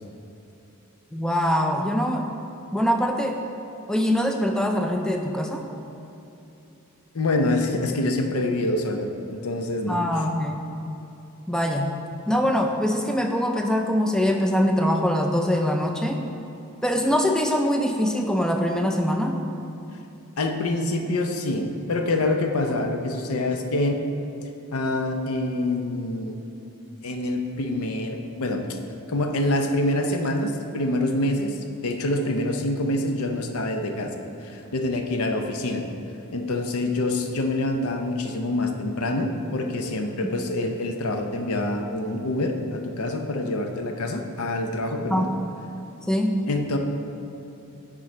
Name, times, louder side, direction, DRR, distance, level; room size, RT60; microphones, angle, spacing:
voice 1, 1.1-2.3 2.7-3.4 3.9-5.6 9.9-10.7 11.5-12.0 12.3-16.2 16.8-19.4 45.1-45.3 46.1-46.3, equal, 5° left, 3 dB, 0.4 m, -23 dB
voice 2, 7.1-10.0 20.4-24.0 24.7-26.4 27.0-28.8 29.1-31.6 31.8-34.1 34.4-35.8 36.3-45.3 46.5-46.8, left 2 dB, 90° left, 4 dB, 0.6 m, -26 dB
9.4 x 3.8 x 4.3 m, 2.8 s
head